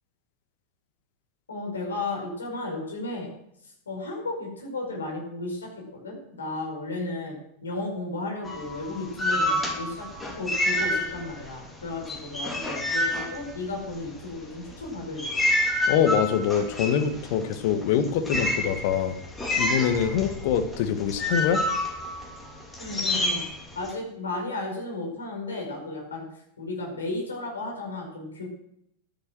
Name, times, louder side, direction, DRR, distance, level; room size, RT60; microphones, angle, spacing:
voice 1, 1.5-3.3 3.6-10.0 10.3-15.4 22.8-23.5 23.7-26.2 26.6-28.5, left 2 dB, 70° left, 0 dB, 5.1 m, -34 dB
sound 1, 8.4-11.5 11.8-14.1 14.7-23.9, left 1 dB, 10° left, 2.8 m, -28 dB
voice 2, 15.9-19.1 19.6-21.6, left 8 dB, 50° left, 8 dB, 1.5 m, -24 dB
12.5 x 9.7 x 6.3 m, 0.75 s
figure-of-eight pair, 90°, 0 cm